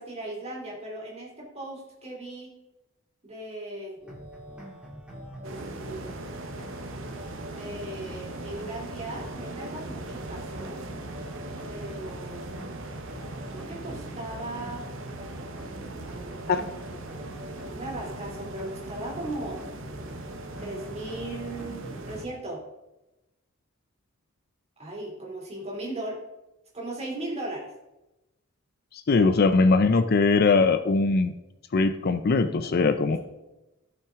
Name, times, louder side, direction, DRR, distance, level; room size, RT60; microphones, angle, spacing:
voice 1, 0.0-2.5 3.2-4.0 5.4-6.2 7.6-10.8 11.7-12.7 13.5-14.9 16.0-16.7 17.7-19.6 20.6-22.6 24.8-26.2 26.7-27.7, right 1 dB, 30° right, -3 dB, 2.8 m, -37 dB
sound 1, 4.0-22.2, equal, 5° right, 2.2 m, -44 dB
sound 2, 5.4-22.3, right 2 dB, 60° right, 0.9 m, -40 dB
voice 2, 29.1-31.3 31.7-33.2, left 3 dB, 45° left, 10 dB, 0.5 m, -21 dB
15.0 x 5.7 x 3.6 m, 0.99 s
head